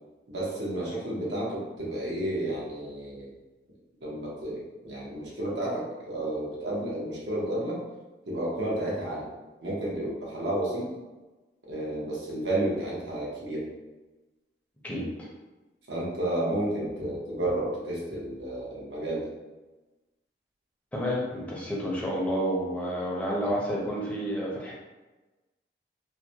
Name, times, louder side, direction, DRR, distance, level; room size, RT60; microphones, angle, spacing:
voice 1, 0.3-3.3 4.0-7.8 8.3-9.2 9.6-10.9 11.7-13.6 15.9-19.2, right 1 dB, 85° right, -5 dB, 0.8 m, -31 dB
voice 2, 14.8-15.3 20.9-24.7, equal, 10° left, -5 dB, 0.5 m, -30 dB
2.4 x 2.1 x 2.7 m, 1.2 s
head